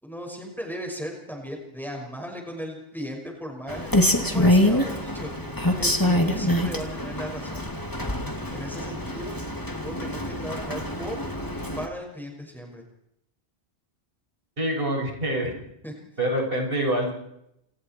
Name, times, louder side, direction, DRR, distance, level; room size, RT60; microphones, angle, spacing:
voice 1, 0.0-3.9 4.2-5.3 5.8-7.7 8.5-9.4 9.8-11.2 11.5-12.8 15.8-15.9, equal, ahead, 1 dB, 5.9 m, -36 dB
Rain, 3.7-11.9, left 1 dB, 15° left, 2.6 m, -25 dB
voice 2, 14.6-15.6 16.2-17.1, right 1 dB, 50° right, 0 dB, 6.9 m, -25 dB
29.0 x 28.5 x 4.6 m, 0.81 s
omnidirectional pair, 1.2 m